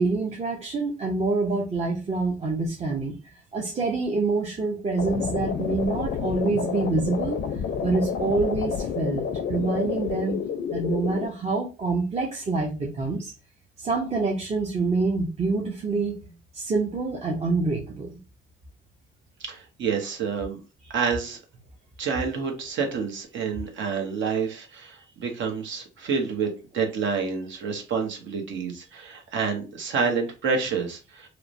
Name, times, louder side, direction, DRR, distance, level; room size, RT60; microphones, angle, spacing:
voice 1, 0.0-3.2 3.5-7.4 7.8-10.4 10.7-13.3 13.8-16.2 16.5-18.2, right 3 dB, 35° right, -1 dB, 0.6 m, -26 dB
sound 1, 5.0-11.3, left 7 dB, 65° left, 0.5 m, -29 dB
voice 2, 19.4-20.6 20.9-21.4 22.0-31.3, right 5 dB, 70° right, 3 dB, 0.8 m, -28 dB
2.9 x 2.0 x 2.5 m, 0.31 s
cardioid pair, 90°, 20 cm